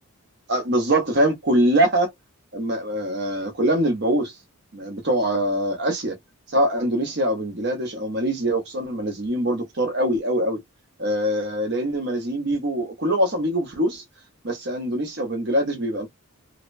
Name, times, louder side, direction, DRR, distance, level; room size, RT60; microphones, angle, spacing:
voice 1, 0.5-2.1 2.5-4.3 4.7-6.2 6.5-10.6 11.0-14.0 14.4-16.1, right 1 dB, 50° right, 0.9 m, -23 dB
2.8 x 2.0 x 2.6 m
head